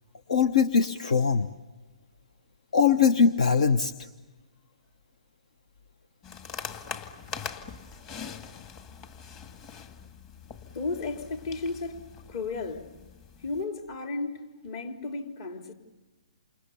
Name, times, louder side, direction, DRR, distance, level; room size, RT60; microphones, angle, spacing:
voice 1, 0.3-1.5 2.7-3.9, left 6 dB, 70° left, 1.1 m, -21 dB
sound 1, 6.2-13.6, left 6 dB, 25° left, 2.0 m, -42 dB
voice 2, 10.7-12.0 12.3-12.9 13.4-15.7, left 3 dB, 45° left, 3.2 m, -34 dB
29.0 x 27.0 x 7.1 m
hypercardioid pair, 140°, 4 cm